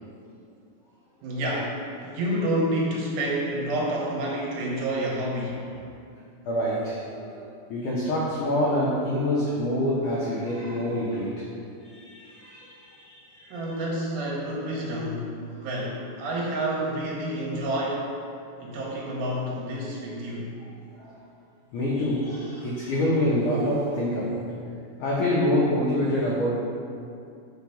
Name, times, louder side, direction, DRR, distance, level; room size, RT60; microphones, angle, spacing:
voice 1, 1.2-1.8 2.0-5.6 13.5-18.1 18.6-20.6, right 1 dB, 90° right, -4 dB, 3.2 m, -29 dB
voice 2, 6.5-11.5 11.8-13.8 15.6-15.7 21.0-21.2 21.7-24.6 25.0-26.6, left 1 dB, 80° left, -6 dB, 1.8 m, -26 dB
5.8 x 4.6 x 5.5 m, 2.4 s
omnidirectional pair, 4.8 m